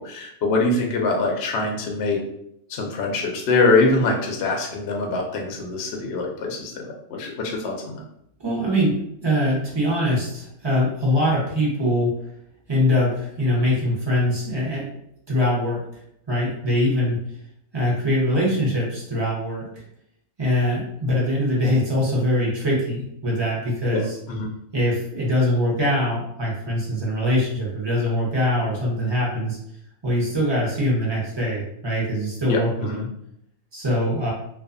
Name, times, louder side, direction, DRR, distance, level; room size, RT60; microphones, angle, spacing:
voice 1, 0.0-2.2 2.7-8.0 23.9-24.0 24.3-24.5 32.5-33.1, left 3 dB, 65° left, 1 dB, 0.6 m, -23 dB
voice 2, 8.4-12.1 12.7-14.9 15.3-15.8 16.3-17.2 17.7-19.8 20.4-24.1 24.7-29.6 30.0-33.1 33.7-34.3, left 1 dB, 35° right, -5 dB, 0.4 m, -23 dB
2.5 x 2.3 x 2.4 m, 0.75 s
omnidirectional pair, 1.6 m